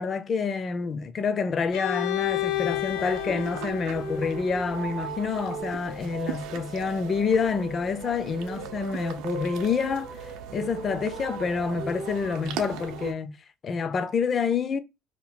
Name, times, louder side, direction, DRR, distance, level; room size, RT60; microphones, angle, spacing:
voice 1, 0.0-13.4 13.6-14.8, left 5 dB, 25° left, 0.3 m, -28 dB
Bowed string instrument, 1.7-5.5, left 16 dB, 85° left, 0.6 m, -32 dB
sound 1, 2.0-13.1, right 6 dB, 70° right, 0.5 m, -37 dB
2.8 x 2.3 x 4.2 m
cardioid pair, 180°, 0 cm